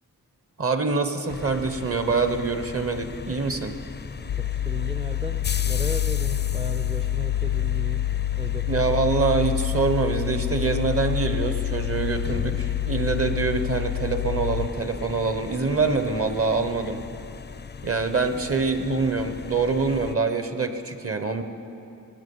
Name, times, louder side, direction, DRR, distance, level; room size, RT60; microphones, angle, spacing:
voice 1, 0.6-3.8 8.7-17.1 17.8-21.4, right 4 dB, 45° right, 8 dB, 1.1 m, -25 dB
sound 1, 1.3-20.2, left 5 dB, 30° left, 0.5 m, -38 dB
sound 2, 4.3-14.7, left 12 dB, 85° left, 0.5 m, -27 dB
voice 2, 4.3-8.0 8.4-8.8, right 2 dB, 15° right, 6 dB, 0.5 m, -36 dB
19.0 x 9.4 x 5.5 m, 2.7 s
wide cardioid pair, 70°, 33 cm